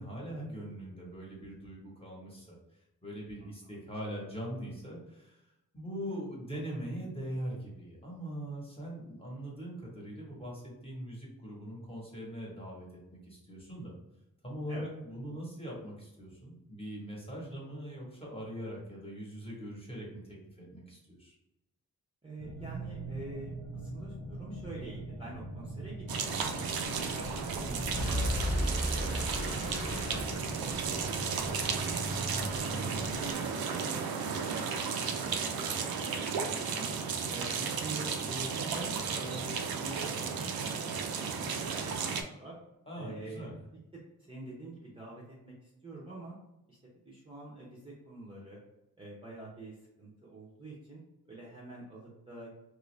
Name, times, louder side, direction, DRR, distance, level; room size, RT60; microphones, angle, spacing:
voice 1, 0.0-13.9 14.4-21.3 42.9-43.5, equal, 15° left, -4 dB, 1.1 m, -42 dB
voice 2, 3.4-3.8 14.7-14.9 22.2-25.9 26.2-26.4 26.9-30.8 31.0-34.4 34.8-35.6 35.9-36.3 36.7-36.9 37.3-42.5 43.0-43.5 43.9-44.0 44.3-46.3 46.7-46.8 47.0-48.6 49.0-51.0 51.3-52.5, right 2 dB, 15° right, -6 dB, 0.7 m, -47 dB
sound 1, 22.4-33.4, right 1 dB, 85° left, 1.0 m, -41 dB
sound 2, 26.1-42.2, right 6 dB, 85° right, 0.5 m, -34 dB
sound 3, 27.3-31.0, equal, 45° left, 0.6 m, -34 dB
3.0 x 2.6 x 3.2 m, 0.91 s
wide cardioid pair, 140°, 35 cm